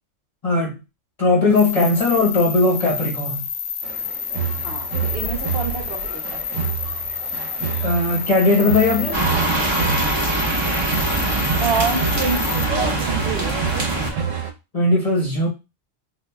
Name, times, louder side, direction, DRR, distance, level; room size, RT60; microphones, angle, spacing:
voice 1, 0.4-0.8 1.2-3.4 7.8-9.2 14.7-15.5, left 2 dB, 35° left, 0.8 m, -18 dB
sound 1, 1.5-12.6, left 6 dB, 70° left, 0.9 m, -29 dB
sound 2, 3.8-14.5, right 7 dB, 80° right, 1.1 m, -28 dB
voice 2, 4.6-6.4 11.6-13.6, right 4 dB, 55° right, 0.9 m, -27 dB
sound 3, 9.1-14.1, right 2 dB, 25° right, 0.7 m, -23 dB
5.4 x 2.1 x 2.2 m
omnidirectional pair, 1.3 m